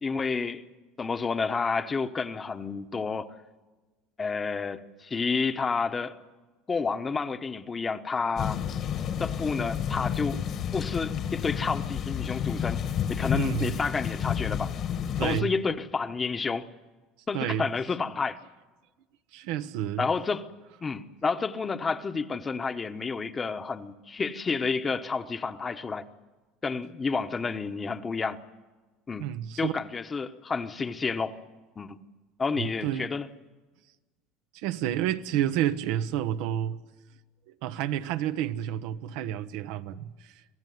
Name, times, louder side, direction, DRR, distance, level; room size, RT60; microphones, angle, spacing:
voice 1, 0.0-0.6 1.0-3.3 4.2-6.2 6.7-8.6 9.2-10.4 10.7-12.8 13.1-14.7 15.2-16.7 17.3-18.4 20.0-20.5 20.8-26.0 26.6-28.4 29.1-29.3 29.6-31.4 31.8-32.0 32.4-33.3, left 4 dB, 20° left, 1.1 m, -30 dB
sound 1, 8.4-15.4, left 8 dB, 45° left, 1.6 m, -30 dB
voice 2, 13.3-13.8 15.2-15.5 17.3-17.7 19.3-20.1 29.2-29.7 32.6-33.1 34.5-36.8 37.5-40.3, right 11 dB, 75° right, 1.0 m, -30 dB
26.0 x 16.5 x 9.4 m
supercardioid pair, 120°, 0 cm